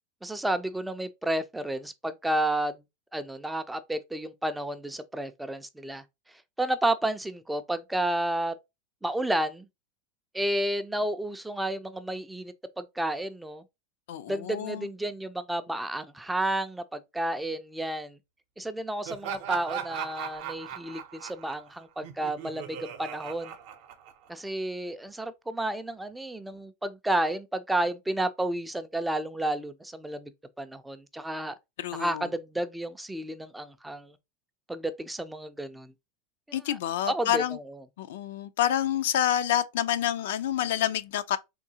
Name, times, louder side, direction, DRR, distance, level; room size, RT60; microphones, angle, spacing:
voice 1, 0.2-2.8 3.1-6.0 6.6-8.5 9.0-9.7 10.3-13.6 14.3-18.2 18.6-23.5 24.3-30.3 30.6-31.6 31.9-34.1 34.7-35.9 36.5-36.6 37.1-37.8, right 1 dB, 5° right, 0.3 m, -31 dB
voice 2, 14.1-14.9 31.8-32.3 36.5-37.6 38.0-41.4, left 11 dB, 80° left, 0.4 m, -28 dB
Laughter, 19.0-24.5, right 9 dB, 65° right, 0.6 m, -38 dB
3.7 x 2.7 x 2.7 m
supercardioid pair, 135°, 0 cm